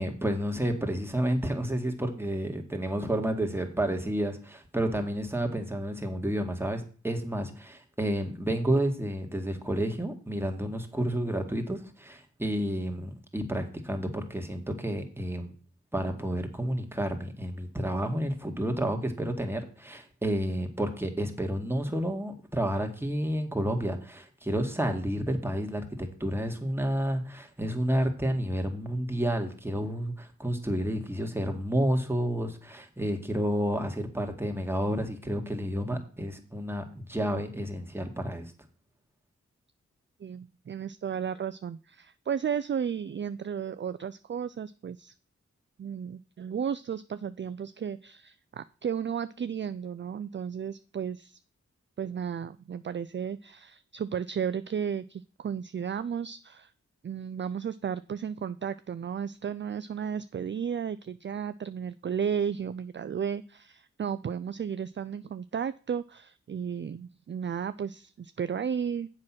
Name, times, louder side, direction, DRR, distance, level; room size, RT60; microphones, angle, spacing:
voice 1, 0.0-15.5 15.9-38.5, right 1 dB, 10° right, 4 dB, 2.0 m, -30 dB
voice 2, 40.2-45.1 45.8-51.4 52.0-56.7 57.0-69.1, right 7 dB, 40° right, 14 dB, 0.4 m, -34 dB
7.4 x 5.8 x 6.1 m, 0.38 s
cardioid pair, 40°, 29 cm